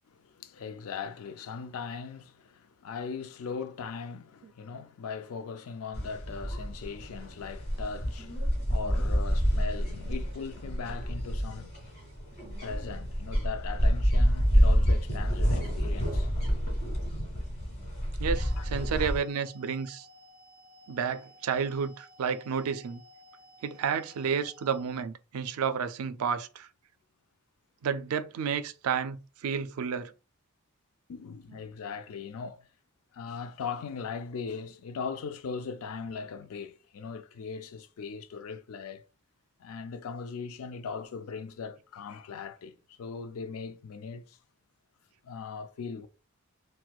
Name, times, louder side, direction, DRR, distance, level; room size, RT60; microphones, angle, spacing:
voice 1, 0.1-11.8 12.6-16.3 18.6-18.7 18.9-19.1 31.1-32.7 33.1-39.0 39.6-44.4 45.2-46.1, left 5 dB, 70° left, 0.4 m, -39 dB
sound 1, 5.9-19.2, equal, 30° left, 1.6 m, -28 dB
voice 2, 18.2-20.1 20.9-23.0 23.6-26.7 27.8-30.1, right 6 dB, 75° right, 0.3 m, -31 dB
sound 2, 18.3-25.0, left 1 dB, 10° right, 1.6 m, -56 dB
4.3 x 2.1 x 2.3 m
head